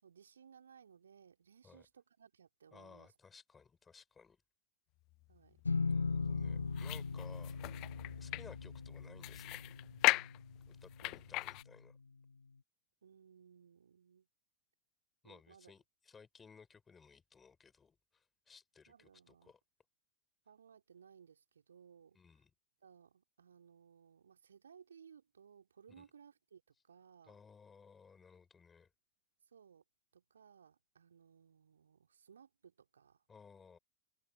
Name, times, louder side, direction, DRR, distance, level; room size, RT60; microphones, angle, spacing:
voice 1, 0.0-3.1 5.3-5.7 11.0-11.1 13.0-14.3 15.2-15.7 18.9-19.5 20.5-22.2 22.8-27.4 29.5-29.8 30.1-33.2, right 7 dB, 70° right, 3.6 m, -61 dB
voice 2, 2.7-4.4 5.9-7.6 8.2-9.6 10.7-12.0 15.2-19.6 22.1-22.5 25.9-26.0 27.2-28.9 33.3-33.8, left 5 dB, 15° left, 7.9 m, -59 dB
sound 1, 5.1-11.6, left 21 dB, 40° left, 0.3 m, -39 dB
sound 2, 5.7-11.3, left 4 dB, 80° left, 1.4 m, -39 dB
open air
figure-of-eight pair, 90°, 0 cm